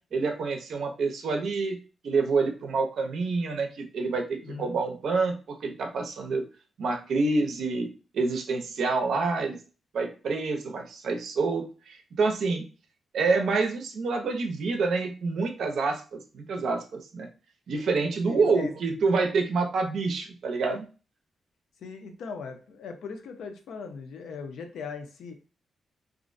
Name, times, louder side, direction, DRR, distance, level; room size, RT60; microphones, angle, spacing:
voice 1, 0.1-1.8 2.0-5.3 5.6-6.4 6.8-7.9 8.1-9.6 9.9-12.6 13.1-17.3 17.7-20.9, right 4 dB, 65° right, 4 dB, 0.5 m, -27 dB
voice 2, 4.4-4.8 18.3-18.7 21.8-25.4, left 5 dB, 85° left, 6 dB, 0.4 m, -39 dB
2.4 x 2.0 x 2.5 m, 0.34 s
cardioid pair, 130°, 0 cm